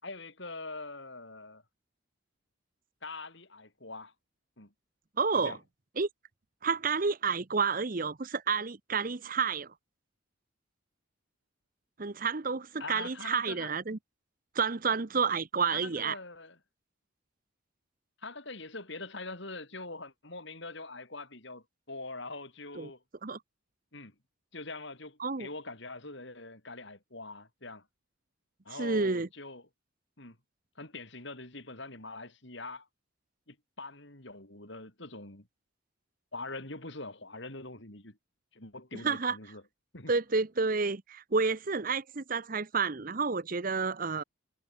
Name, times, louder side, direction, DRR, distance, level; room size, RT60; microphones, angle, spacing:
voice 1, 0.0-1.6 3.0-4.1 4.6-4.7 5.3-5.6 12.8-13.7 15.7-16.6 18.2-23.0 23.9-24.1 24.5-27.8 28.6-29.6 30.2-30.4 30.8-32.9 33.5-35.5 36.3-38.2 38.5-39.6 39.9-40.1, left 3 dB, 60° left, 5.1 m, -43 dB
voice 2, 5.2-5.6 6.0-6.1 6.6-9.7 12.0-14.0 14.5-16.2 22.8-22.9 23.2-23.4 25.2-25.5 28.7-29.3 39.0-39.4 40.1-44.2, right 5 dB, 40° right, 0.8 m, -30 dB
head